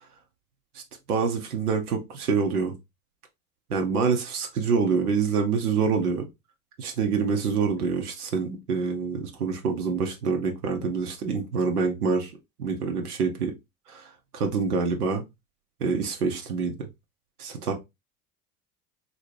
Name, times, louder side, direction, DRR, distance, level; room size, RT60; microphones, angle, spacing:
voice 1, 1.1-2.7 3.7-6.3 6.8-12.3 12.6-13.5 13.9-14.1 14.3-15.2 15.8-16.7 17.4-17.7, right 5 dB, 75° right, 0.8 m, -26 dB
4.0 x 2.6 x 3.1 m
figure-of-eight pair, 70°, 46 cm